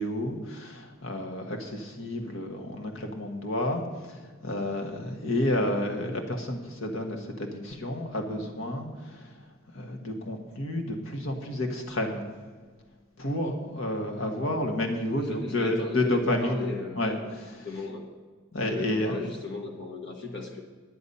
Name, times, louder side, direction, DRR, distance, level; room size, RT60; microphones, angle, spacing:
voice 1, 0.0-9.3 9.7-12.2 13.2-16.7 17.0-17.6 18.5-19.1, left 1 dB, 70° left, 3 dB, 1.6 m, -30 dB
voice 2, 15.2-17.3 17.6-18.1 18.6-20.6, left 3 dB, 50° left, 1 dB, 1.3 m, -36 dB
10.0 x 10.0 x 5.5 m, 1.5 s
head